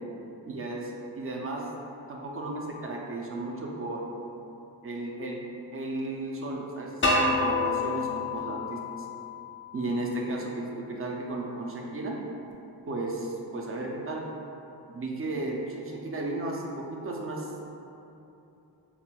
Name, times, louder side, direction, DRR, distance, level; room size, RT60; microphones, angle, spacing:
voice 1, 0.5-1.7 2.1-4.1 4.8-5.4 5.7-9.1 9.7-12.2 12.9-14.3 14.9-17.7, right 2 dB, 30° right, -1 dB, 0.4 m, -34 dB
sound 1, 7.0-9.9, left 2 dB, 25° left, 0.5 m, -28 dB
5.6 x 2.1 x 2.2 m, 2.8 s
wide cardioid pair, 105°, 44 cm